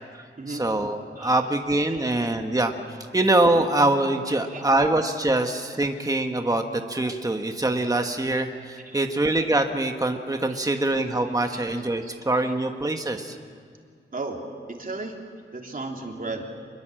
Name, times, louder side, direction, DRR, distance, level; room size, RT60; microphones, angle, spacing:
voice 1, 0.2-2.7 3.1-13.4, right 2 dB, 15° right, 5 dB, 1.3 m, -24 dB
voice 2, 1.1-1.5 1.9-2.1 4.3-4.9 8.8-9.0 10.5-10.9 11.3-11.6 12.0-12.5 14.1-14.4 14.7-15.2 15.5-16.4, right 3 dB, 40° right, 1 dB, 3.2 m, -36 dB
26.5 x 21.5 x 7.7 m, 2.2 s
wide cardioid pair, 125°, 21 cm